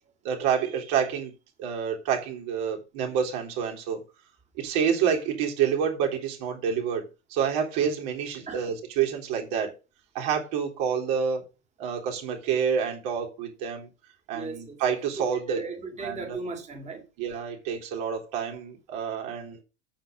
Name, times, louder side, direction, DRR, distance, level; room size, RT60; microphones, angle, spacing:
voice 1, 0.2-1.3 1.6-4.0 4.6-9.7 10.1-11.4 11.8-13.9 14.3-15.6 16.0-16.2 17.2-19.6, right 7 dB, 55° right, 3.7 m, -28 dB
voice 2, 14.3-14.8 15.2-17.0, right 3 dB, 20° right, 2.7 m, -37 dB
8.7 x 6.0 x 6.8 m
hypercardioid pair, 100°, 35 cm